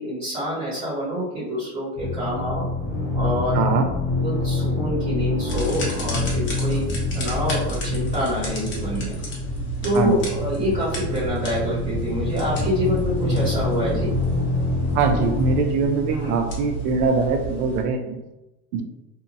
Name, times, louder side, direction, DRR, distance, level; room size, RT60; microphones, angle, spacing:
voice 1, 0.0-2.6 3.1-3.6 4.2-6.8 7.1-9.1 9.8-14.1 16.1-16.4, equal, 35° right, -11 dB, 1.2 m, -26 dB
sound 1, 1.9-15.6, left 3 dB, 15° right, 1.1 m, -26 dB
voice 2, 3.5-3.9 9.9-10.2 14.9-18.2 18.7-18.8, right 4 dB, 70° right, 6 dB, 0.6 m, -22 dB
sound 2, 5.5-17.8, right 4 dB, 25° left, 0.8 m, -31 dB
2.7 x 2.4 x 2.5 m, 0.98 s
supercardioid pair, 135°, 47 cm